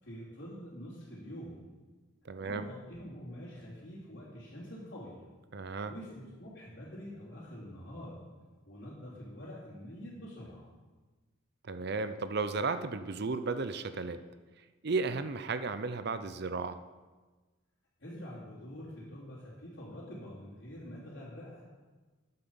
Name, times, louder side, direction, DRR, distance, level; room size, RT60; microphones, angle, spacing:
voice 1, 0.0-1.7 2.4-5.3 5.9-8.2 8.6-10.7 18.0-21.6, equal, 60° left, -8 dB, 3.1 m, -46 dB
voice 2, 2.2-2.7 5.5-5.9 11.6-14.2 14.8-16.8, right 4 dB, 55° right, 11 dB, 0.6 m, -34 dB
9.7 x 7.7 x 7.0 m, 1.3 s
head